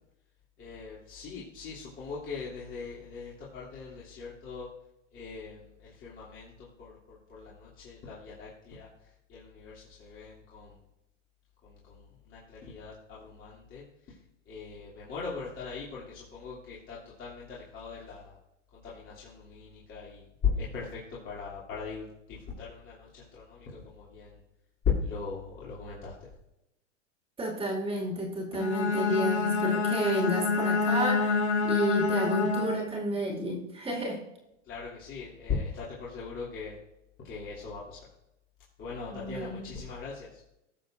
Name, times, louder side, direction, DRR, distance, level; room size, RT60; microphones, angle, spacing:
voice 1, 0.6-4.7 5.1-8.9 9.3-10.8 11.6-14.2 14.5-18.4 18.7-24.4 25.0-26.3 34.6-36.8 37.2-38.0 38.8-40.4, left 5 dB, 30° left, -8 dB, 2.9 m, -40 dB
voice 2, 27.4-34.2 39.1-39.7, right 1 dB, 15° right, -2 dB, 2.4 m, -31 dB
Bowed string instrument, 28.5-33.0, left 4 dB, 65° left, 1.9 m, -27 dB
18.0 x 6.9 x 2.6 m, 0.88 s
hypercardioid pair, 110°, 37 cm